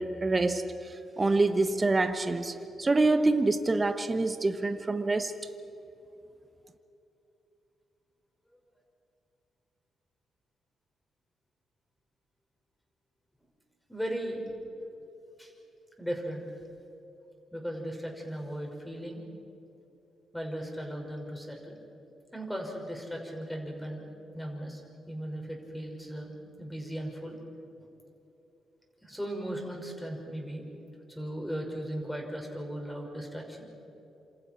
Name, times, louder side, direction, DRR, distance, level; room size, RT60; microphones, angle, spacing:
voice 1, 0.0-5.3, right 2 dB, 30° right, 9 dB, 1.3 m, -26 dB
voice 2, 13.9-14.5 15.4-15.5 16.0-16.4 17.5-19.2 20.3-21.8 22.3-24.1 24.3-27.4 29.0-30.6 31.1-33.6, equal, 5° left, 1 dB, 5.5 m, -37 dB
27.5 x 26.5 x 4.5 m, 3.0 s
hypercardioid pair, 50°, 0 cm